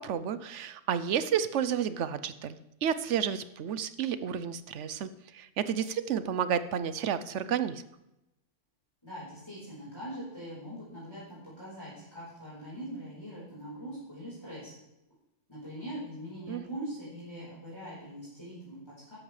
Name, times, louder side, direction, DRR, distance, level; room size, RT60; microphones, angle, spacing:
voice 1, 0.0-2.5 2.8-7.8 16.5-16.6, right 8 dB, 75° right, 13 dB, 1.0 m, -31 dB
voice 2, 9.0-14.7 15.5-19.2, equal, 20° left, -9 dB, 4.3 m, -42 dB
13.0 x 11.0 x 3.2 m, 0.90 s
omnidirectional pair, 1.3 m